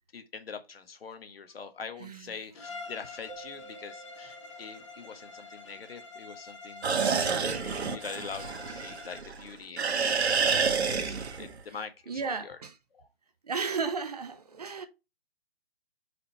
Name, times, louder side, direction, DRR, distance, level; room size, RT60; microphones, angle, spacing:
voice 1, 0.1-12.6 12.9-13.1, left 5 dB, 65° left, 1.4 m, -44 dB
voice 2, 2.0-2.3 7.1-7.6 12.1-12.8 13.4-14.9, right 5 dB, 40° right, 0.7 m, -34 dB
Bowed string instrument, 2.5-9.4, left 3 dB, 30° left, 0.8 m, -46 dB
Keyboard (musical), 3.3-6.0, right 5 dB, 5° right, 0.9 m, -53 dB
sound 1, 6.8-9.4 9.8-11.6, right 5 dB, 90° right, 1.2 m, -28 dB
5.0 x 4.4 x 4.5 m
hypercardioid pair, 175°, 32 cm